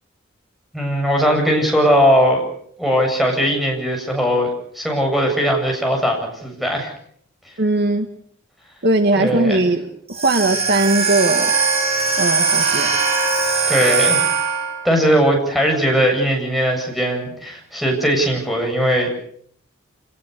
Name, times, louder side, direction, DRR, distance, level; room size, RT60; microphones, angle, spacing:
voice 1, 0.7-2.4 2.8-4.5 4.7-6.9 9.2-9.6 13.7-14.3 14.8-19.1, equal, ahead, 1 dB, 7.9 m, -19 dB
voice 2, 7.6-8.1 8.8-11.5 12.2-12.9, right 2 dB, 55° right, 6 dB, 1.7 m, -19 dB
sound 1, 10.1-14.9, right 5 dB, 30° right, 7.9 m, -20 dB
27.5 x 19.5 x 6.7 m, 0.65 s
head